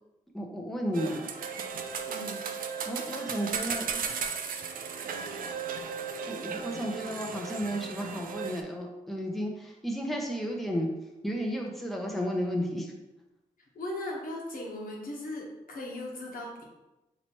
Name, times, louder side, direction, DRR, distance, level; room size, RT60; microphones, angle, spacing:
voice 1, 0.3-1.3 2.9-4.0 6.3-10.9 11.2-12.9, equal, ahead, 0 dB, 0.8 m, -33 dB
sound 1, 0.9-8.6, right 6 dB, 65° right, 0.4 m, -35 dB
voice 2, 2.1-2.4 13.6-16.6, left 1 dB, 65° left, -2 dB, 1.1 m, -38 dB
4.1 x 3.0 x 2.9 m, 0.99 s
supercardioid pair, 50°, 15 cm